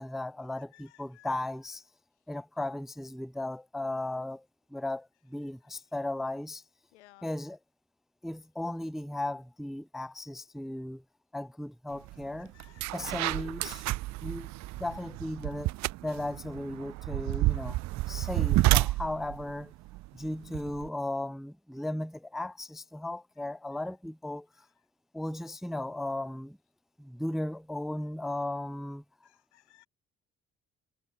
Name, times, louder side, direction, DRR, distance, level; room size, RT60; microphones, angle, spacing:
voice 1, 0.0-1.8 2.3-4.4 4.7-6.6 7.2-7.6 8.2-11.0 11.3-12.5 12.9-13.9 14.2-15.7 16.0-17.8 18.1-19.7 20.1-24.5 25.1-26.6 27.0-29.0, left 1 dB, ahead, 0.5 m, -36 dB
voice 2, 0.7-1.3 6.9-7.3 12.5-13.1 29.2-29.9, left 17 dB, 80° left, 1.5 m, -59 dB
sound 1, 12.1-12.2 12.6-20.9, right 19 dB, 55° right, 0.5 m, -30 dB
hypercardioid pair, 45°, 34 cm